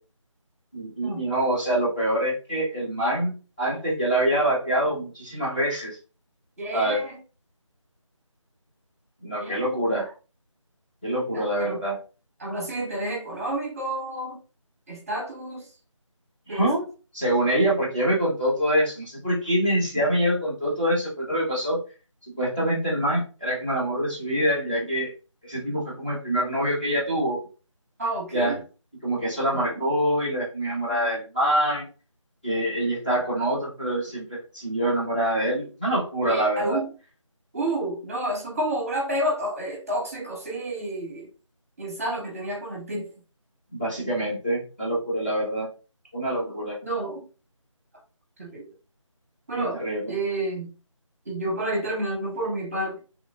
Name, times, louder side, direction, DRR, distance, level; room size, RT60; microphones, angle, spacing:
voice 1, 0.7-6.0 6.7-7.0 9.2-10.1 11.0-12.0 16.5-16.8 17.1-21.8 22.2-25.1 25.4-27.5 28.3-28.6 29.0-31.9 32.4-36.8 43.7-45.7 46.1-46.8 49.5-50.1, right 1 dB, 15° left, -10 dB, 0.8 m, -25 dB
voice 2, 6.6-7.2 9.4-9.8 11.3-11.8 12.4-14.4 14.9-15.7 16.5-16.7 28.0-28.6 36.2-36.9 37.5-41.2 41.8-43.1 46.8-47.2 48.4-48.7 49.5-49.8 50.1-50.7 51.2-53.0, right 1 dB, 25° right, -3 dB, 0.9 m, -30 dB
2.8 x 2.4 x 2.2 m, 0.34 s
figure-of-eight pair, 165°, 17 cm